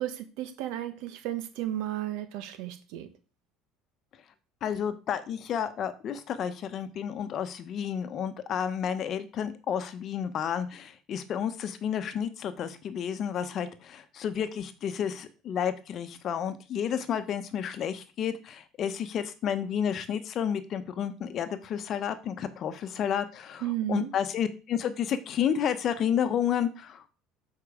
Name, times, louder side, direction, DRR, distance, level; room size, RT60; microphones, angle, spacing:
voice 1, 0.0-3.1 23.6-24.1, right 13 dB, 75° right, 10 dB, 1.1 m, -33 dB
voice 2, 4.6-27.1, left 8 dB, 45° left, 10 dB, 0.9 m, -31 dB
6.9 x 4.7 x 4.8 m, 0.34 s
cardioid pair, 120°, 0 cm